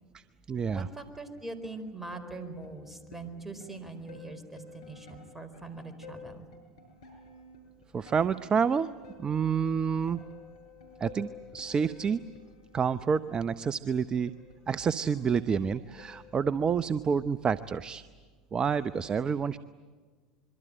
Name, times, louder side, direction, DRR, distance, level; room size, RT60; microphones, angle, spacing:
voice 1, 0.1-0.9 7.9-8.9 9.2-10.2 11.0-12.2 12.7-14.3 14.7-18.0 18.5-19.6, right 6 dB, 30° right, 14 dB, 0.7 m, -28 dB
voice 2, 0.7-6.5, right 3 dB, 10° right, 9 dB, 4.4 m, -42 dB
sound 1, 1.1-16.8, left 4 dB, 75° left, 7.0 m, -52 dB
26.5 x 23.5 x 8.9 m, 1.5 s
hypercardioid pair, 80°, 3 cm